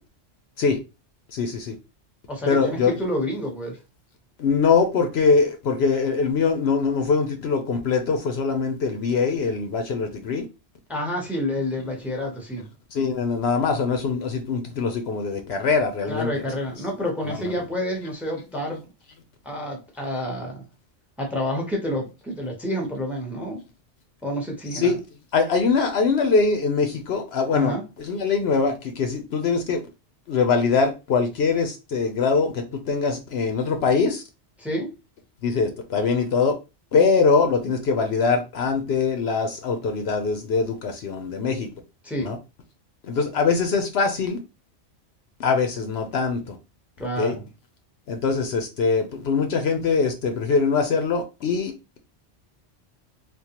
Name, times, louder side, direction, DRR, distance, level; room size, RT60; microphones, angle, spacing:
voice 1, 1.3-1.7 2.5-2.9 4.4-10.4 11.9-12.0 12.9-16.5 17.2-17.5 24.7-25.0 25.3-29.8 30.3-34.2 35.4-36.5 36.9-41.7 42.2-42.4 43.0-44.4 45.4-46.6 47.2-47.3 48.1-52.0, left 4 dB, 65° left, 0.8 m, -23 dB
voice 2, 2.3-3.8 10.9-12.7 16.1-18.9 19.4-20.6 21.2-23.6 24.2-25.0 27.5-27.8 34.6-34.9 42.0-42.3 47.0-47.4, equal, ahead, 0.8 m, -29 dB
3.7 x 2.4 x 2.8 m
omnidirectional pair, 1.2 m